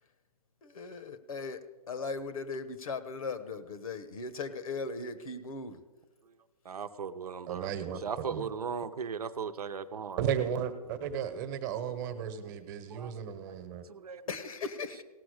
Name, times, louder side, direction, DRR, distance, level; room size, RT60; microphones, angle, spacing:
voice 1, 0.6-1.6 1.9-5.8 14.3-15.0, left 4 dB, 65° left, 12 dB, 1.2 m, -38 dB
voice 2, 6.6-10.2 12.9-13.1 13.5-13.6 13.8-14.2, right 6 dB, 75° right, 10 dB, 0.8 m, -38 dB
voice 3, 7.5-8.5 10.2-13.8, right 8 dB, 30° right, 9 dB, 1.2 m, -34 dB
17.5 x 6.1 x 6.5 m, 1.3 s
hypercardioid pair, 140°, 19 cm